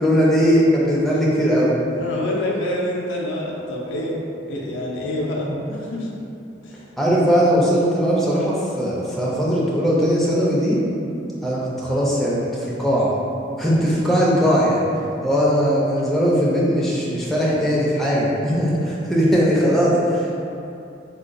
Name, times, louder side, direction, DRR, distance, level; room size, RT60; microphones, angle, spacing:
voice 1, 0.0-1.7 5.4-5.6 7.0-10.8 11.4-13.1 13.6-14.8 15.2-20.3, equal, ahead, -7 dB, 0.4 m, -19 dB
voice 2, 2.0-6.1 6.6-6.9 13.8-14.2, left 1 dB, 85° left, -3 dB, 0.4 m, -27 dB
3.9 x 2.2 x 2.5 m, 2.7 s
head